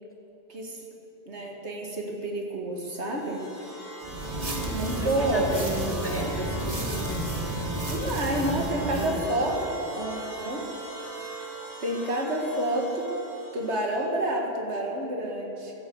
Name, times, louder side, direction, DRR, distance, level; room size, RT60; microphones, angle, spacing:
voice 1, 1.3-3.4 3.7-3.8 4.7-5.5 7.8-9.6 10.0-10.7 11.8-13.1 13.5-15.7, right 1 dB, 80° right, 0 dB, 2.2 m, -29 dB
sound 1, 2.9-14.2, right 2 dB, 50° right, 3.8 m, -40 dB
sound 2, 4.0-9.3, right 1 dB, 30° right, 1.6 m, -32 dB
voice 2, 5.0-7.6 8.2-9.3, right 1 dB, 10° left, -2 dB, 2.3 m, -35 dB
16.0 x 9.5 x 7.8 m, 2.8 s
omnidirectional pair, 1.1 m